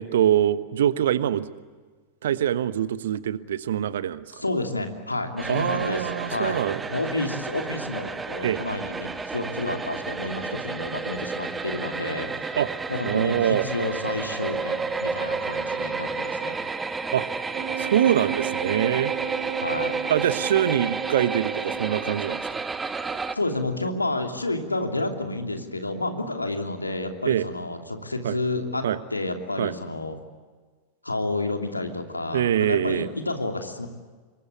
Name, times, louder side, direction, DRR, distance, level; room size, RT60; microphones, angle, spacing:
voice 1, 0.0-1.5 2.2-4.3 5.5-6.8 8.4-8.6 12.6-12.7 13.0-13.7 17.1-17.3 17.8-19.1 20.1-22.6 27.2-27.5 28.2-28.4 28.8-29.0 29.6-29.7 32.3-33.1, right 10 dB, 60° right, 15 dB, 1.2 m, -24 dB
voice 2, 4.3-6.6 6.9-12.6 12.9-16.6 19.6-19.9 23.3-28.8 29.1-30.2 31.0-33.9, left 2 dB, 80° left, 4 dB, 2.9 m, -30 dB
sound 1, 5.4-23.3, right 4 dB, 15° right, 1.5 m, -31 dB
Wind instrument woodwind instrument, 17.5-22.2, right 10 dB, 45° right, 2.5 m, -34 dB
27.5 x 23.0 x 8.3 m, 1.4 s
figure-of-eight pair, 90°, 0 cm